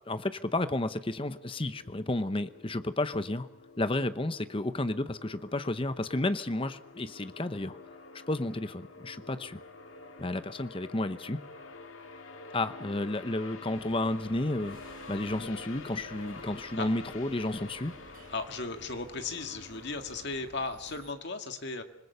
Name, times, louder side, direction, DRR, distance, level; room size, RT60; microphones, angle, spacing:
voice 1, 0.1-3.5 3.8-7.8 8.3-9.6 10.2-11.4 12.5-14.8 15.1-17.9, left 2 dB, 25° left, 12 dB, 0.8 m, -32 dB
sound 1, 0.8-20.5, left 3 dB, 75° left, 1.8 m, -49 dB
sound 2, 13.7-21.1, right 2 dB, 40° right, 1.3 m, -55 dB
voice 2, 18.3-21.8, left 3 dB, 55° left, 6 dB, 2.0 m, -36 dB
26.5 x 21.0 x 6.9 m, 0.80 s
head